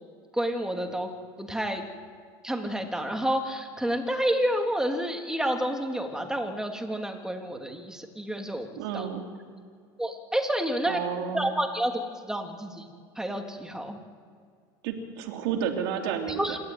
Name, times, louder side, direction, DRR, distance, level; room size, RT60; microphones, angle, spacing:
voice 1, 0.3-1.1 1.4-1.9 2.4-8.7 8.9-9.0 10.0-11.0 11.3-11.9 12.3-12.9 13.2-14.0 16.4-16.6, equal, 5° right, 3 dB, 3.2 m, -29 dB
voice 2, 8.8-9.2 10.8-11.5 14.8-16.6, right 8 dB, 75° right, 4 dB, 3.2 m, -31 dB
27.0 x 13.0 x 9.4 m, 2.1 s
supercardioid pair, 95°, 12 cm